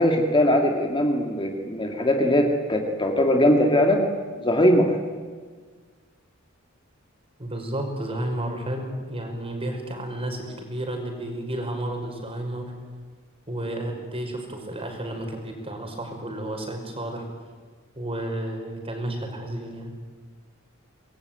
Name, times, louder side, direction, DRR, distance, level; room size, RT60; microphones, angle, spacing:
voice 1, 0.0-4.1 4.4-4.9, left 1 dB, 25° left, 2 dB, 2.3 m, -20 dB
voice 2, 7.4-12.7 13.5-17.3 18.0-19.9, right 1 dB, 30° right, 3 dB, 5.5 m, -32 dB
25.5 x 21.5 x 9.3 m, 1.6 s
head